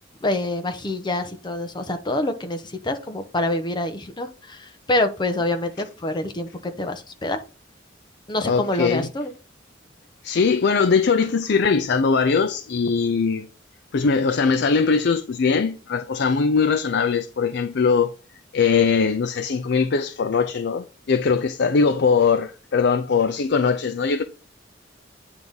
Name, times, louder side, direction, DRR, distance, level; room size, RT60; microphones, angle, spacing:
voice 1, 0.2-7.4 8.3-9.3, left 1 dB, 25° left, 0.9 m, -26 dB
voice 2, 8.4-9.1 10.2-13.5 13.9-18.1 18.5-24.2, left 5 dB, 60° left, 0.5 m, -21 dB
9.0 x 3.5 x 3.9 m
head